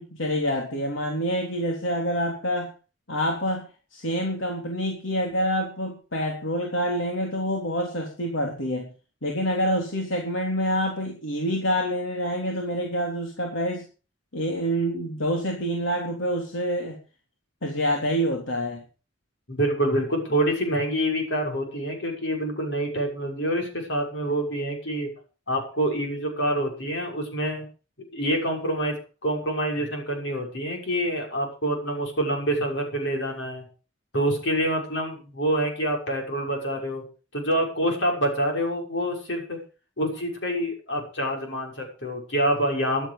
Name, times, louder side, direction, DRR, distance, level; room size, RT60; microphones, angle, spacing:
voice 1, 0.0-2.7 3.1-8.9 9.2-13.8 14.3-17.0 17.6-18.8, equal, 80° left, 0 dB, 3.5 m, -27 dB
voice 2, 19.5-25.1 25.5-27.6 28.1-29.0 29.2-33.6 34.1-37.0 37.3-39.6 40.0-43.1, right 1 dB, 65° left, 1 dB, 6.3 m, -26 dB
14.5 x 12.0 x 5.2 m, 0.35 s
head